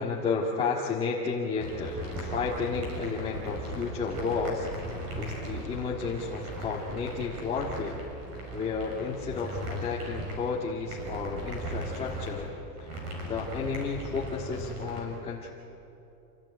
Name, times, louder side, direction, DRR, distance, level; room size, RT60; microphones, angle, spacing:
voice 1, 0.0-4.7 5.1-8.0 8.5-12.5 12.8-12.9 13.2-15.5, left 5 dB, 10° left, -5 dB, 1.8 m, -32 dB
sound 1, 1.6-15.0, right 1 dB, 30° right, 6.4 m, -38 dB
27.0 x 17.0 x 9.5 m, 2.9 s
supercardioid pair, 165°, 49 cm